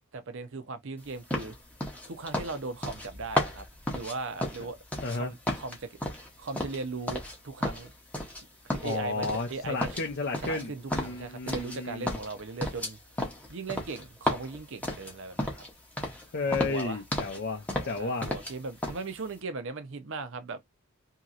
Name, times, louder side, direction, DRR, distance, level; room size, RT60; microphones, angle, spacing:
voice 1, 0.1-1.6 2.1-3.7 3.9-4.8 5.1-5.9 6.4-7.9 8.6-10.0 10.4-13.0 13.5-15.6 16.5-17.0 17.7-20.6, right 3 dB, 55° right, 0.6 m, -38 dB
sound 1, 1.3-5.2 5.4-7.4 7.6-8.4 8.7-9.5 9.8-11.8 12.1-15.7 16.0-16.2 16.5-17.4 17.7-18.5 18.8-19.0, left 1 dB, 5° left, 0.7 m, -33 dB
voice 2, 5.0-5.3 8.8-12.2 16.3-18.3, left 3 dB, 45° left, 0.5 m, -33 dB
2.9 x 2.8 x 2.4 m
head